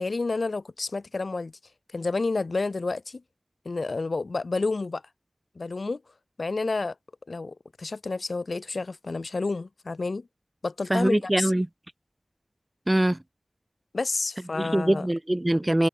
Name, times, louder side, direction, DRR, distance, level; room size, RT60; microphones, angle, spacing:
voice 1, 0.0-1.5 1.9-3.2 3.7-5.0 5.6-6.0 6.4-6.9 7.3-10.3 10.6-11.5 13.9-15.1, left 3 dB, 75° left, 0.5 m, -30 dB
voice 2, 10.9-11.7 12.9-13.2 14.6-15.9, right 1 dB, 25° right, 0.3 m, -23 dB
wide cardioid pair, 50°, 0 cm